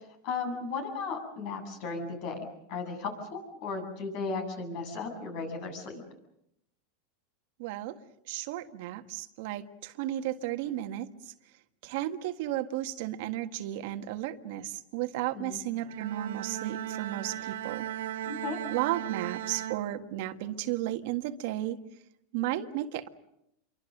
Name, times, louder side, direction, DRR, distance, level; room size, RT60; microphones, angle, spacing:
voice 1, 0.2-6.0 15.3-15.6 18.2-18.6, left 4 dB, 55° left, 6 dB, 7.9 m, -35 dB
voice 2, 7.6-8.0 8.3-11.3 11.8-17.9 18.7-21.8 22.3-23.1, right 13 dB, 65° right, 7 dB, 1.7 m, -34 dB
Bowed string instrument, 15.8-20.5, right 12 dB, 85° right, 1.6 m, -37 dB
27.5 x 24.0 x 6.7 m, 0.79 s
supercardioid pair, 135°, 0 cm